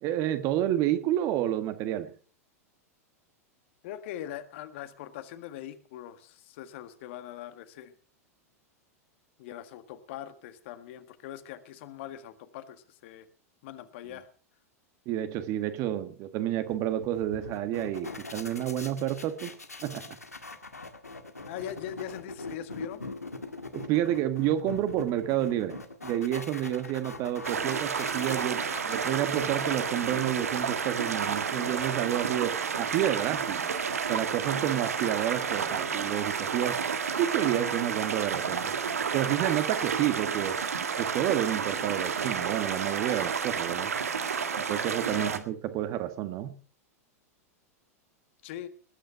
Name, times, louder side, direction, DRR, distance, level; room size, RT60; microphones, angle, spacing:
voice 1, 0.0-2.1 15.0-19.5 19.8-20.2 23.7-33.7 34.1-36.8 37.2-38.7 39.1-40.6 41.0-43.9 44.7-46.6, right 12 dB, 40° right, 10 dB, 1.7 m, -30 dB
voice 2, 3.8-7.9 9.4-13.3 13.6-14.3 21.5-23.0 45.0-45.3 48.4-48.7, left 11 dB, 50° left, 10 dB, 1.7 m, -41 dB
sound 1, 16.7-31.0, left 3 dB, 85° left, 1.8 m, -42 dB
sound 2, 27.4-45.4, right 6 dB, 70° right, 1.7 m, -31 dB
20.0 x 9.4 x 5.8 m, 0.43 s
figure-of-eight pair, 95°, 8 cm